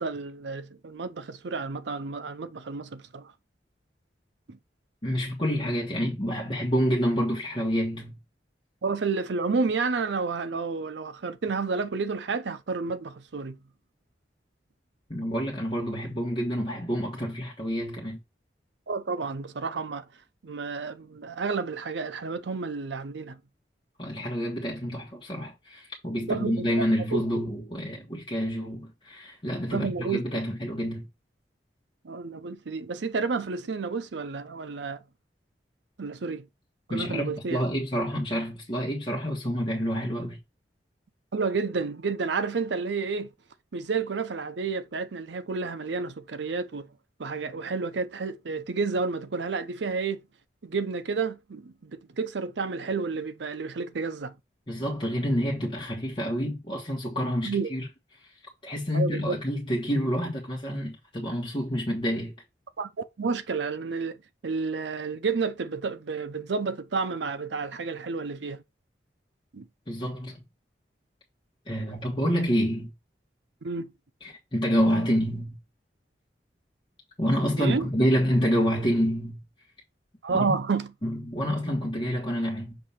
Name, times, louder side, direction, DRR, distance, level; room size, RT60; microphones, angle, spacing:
voice 1, 0.0-3.3 4.5-4.6 8.8-13.6 18.9-20.1 20.4-23.4 26.3-26.8 27.1-27.2 29.7-30.2 32.0-35.0 36.0-36.5 36.9-37.6 41.3-43.3 43.7-46.9 47.2-50.2 50.6-54.3 57.5-57.7 58.9-59.4 62.8-68.6 69.5-69.7 73.6-73.9 77.6-77.9 80.2-80.9, right 4 dB, 80° right, 0.6 m, -30 dB
voice 2, 5.0-8.2 15.1-18.2 24.0-31.1 36.9-40.4 54.7-57.9 58.2-58.3 58.6-62.3 69.9-70.4 71.7-72.9 74.2-75.6 77.2-79.4 80.3-80.5 81.0-82.8, equal, 30° left, 1.3 m, -28 dB
6.8 x 2.8 x 5.7 m
head